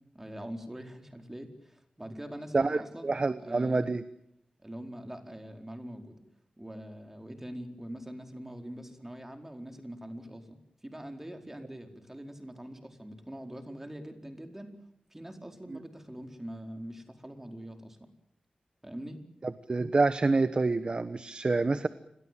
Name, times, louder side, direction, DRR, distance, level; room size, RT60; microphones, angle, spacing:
voice 1, 0.1-3.9 4.6-6.2 6.6-14.7 15.1-18.0 18.8-19.2, equal, 15° right, 5 dB, 4.4 m, -43 dB
voice 2, 2.5-4.0 15.7-15.8 19.4-21.9, right 3 dB, 40° right, 12 dB, 1.2 m, -27 dB
30.0 x 22.0 x 7.7 m, 0.73 s
wide cardioid pair, 95°, 3 cm